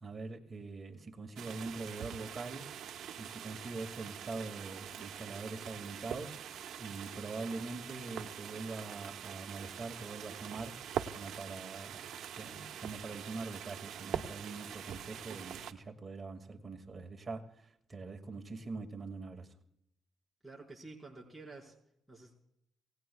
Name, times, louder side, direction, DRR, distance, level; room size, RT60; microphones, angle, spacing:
voice 1, 0.0-2.7 3.2-6.4 6.8-10.8 11.1-12.0 12.3-19.5, right 3 dB, 35° right, 3 dB, 2.1 m, -43 dB
sound 1, 1.4-15.7, right 9 dB, 75° right, 1.1 m, -44 dB
voice 2, 20.4-21.8 22.1-22.3, right 3 dB, ahead, 1 dB, 5.0 m, -50 dB
28.5 x 18.0 x 2.3 m, 0.75 s
cardioid pair, 90°, 0 cm